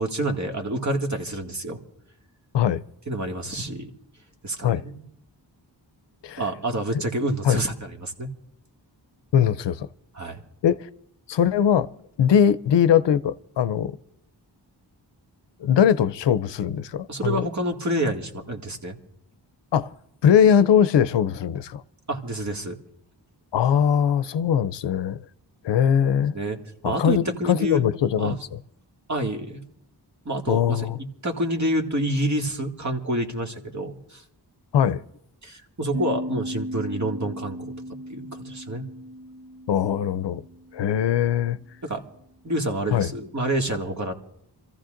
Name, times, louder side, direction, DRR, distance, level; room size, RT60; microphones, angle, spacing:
voice 1, 0.0-1.8 3.1-3.9 4.4-5.0 6.4-8.3 10.1-10.4 17.1-19.0 22.1-22.7 26.3-26.6 26.8-27.8 28.2-28.4 29.1-29.6 30.3-30.9 31.2-34.2 35.4-37.7 38.1-38.8 41.8-42.0 42.4-44.1, right 1 dB, 40° right, 2.1 m, -28 dB
voice 2, 9.3-9.9 10.6-10.9 11.3-11.9 12.2-13.9 15.6-17.5 19.7-19.9 20.2-21.8 23.5-25.2 25.6-26.3 26.8-28.4 30.5-31.0 34.7-35.0 39.7-40.4 40.7-41.6 42.9-43.1, left 8 dB, 80° left, 0.6 m, -21 dB
sound 1, 35.9-41.1, equal, 85° right, 1.1 m, -36 dB
27.0 x 14.5 x 2.6 m
cardioid pair, 65°, 42 cm